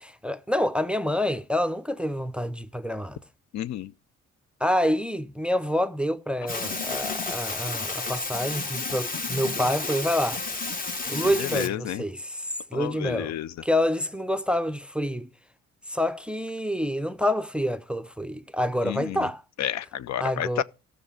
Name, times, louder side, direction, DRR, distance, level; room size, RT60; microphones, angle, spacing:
voice 1, 0.0-3.2 4.6-10.4 11.1-13.3 13.6-15.3 15.9-19.4 20.2-20.6, equal, 5° right, 0.5 m, -27 dB
voice 2, 3.5-3.9 11.2-12.0 12.7-13.5 18.8-19.3 19.6-20.6, left 11 dB, 65° left, 0.5 m, -31 dB
sound 1, 6.5-11.7, left 3 dB, 30° left, 1.2 m, -31 dB
15.0 x 6.5 x 4.9 m
cardioid pair, 90°, 30 cm